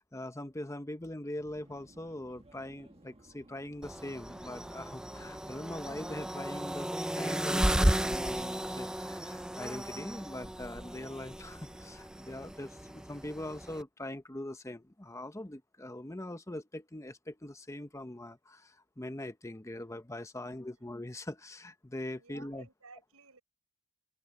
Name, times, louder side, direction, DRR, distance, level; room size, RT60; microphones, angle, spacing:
voice 1, 0.0-22.7, left 1 dB, 15° left, 0.9 m, -42 dB
Subway metro underground, 1.4-13.3, right 1 dB, 25° right, 1.5 m, -59 dB
sound 1, 3.8-13.8, right 1 dB, 5° right, 0.3 m, -34 dB
voice 2, 20.4-20.9 22.2-23.4, right 3 dB, 75° right, 6.1 m, -57 dB
head